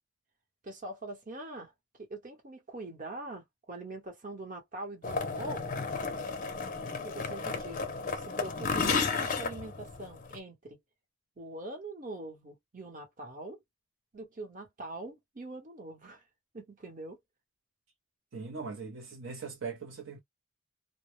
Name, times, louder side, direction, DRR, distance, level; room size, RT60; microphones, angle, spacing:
voice 1, 0.6-1.7 2.0-5.8 7.0-10.8 11.4-13.6 14.1-16.2 16.5-17.2, right 2 dB, 40° right, 0.9 m, -43 dB
sound 1, 5.0-10.4, left 4 dB, 40° left, 0.5 m, -33 dB
voice 2, 18.3-20.2, right 4 dB, 65° right, 0.5 m, -40 dB
2.0 x 2.0 x 3.0 m
head